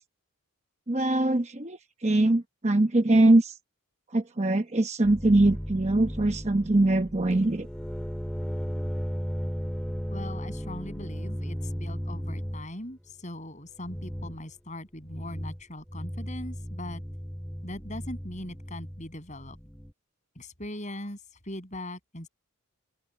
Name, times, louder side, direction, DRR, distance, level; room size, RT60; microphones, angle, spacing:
voice 1, 0.9-3.5 4.1-7.7, right 2 dB, 30° right, 0.9 m, -22 dB
sound 1, 5.0-12.7 13.8-14.4 15.0-15.6 15.9-19.9, equal, 5° left, 2.2 m, -35 dB
voice 2, 10.1-17.0 17.6-19.6 20.4-22.3, left 1 dB, 35° left, 7.2 m, -40 dB
open air
head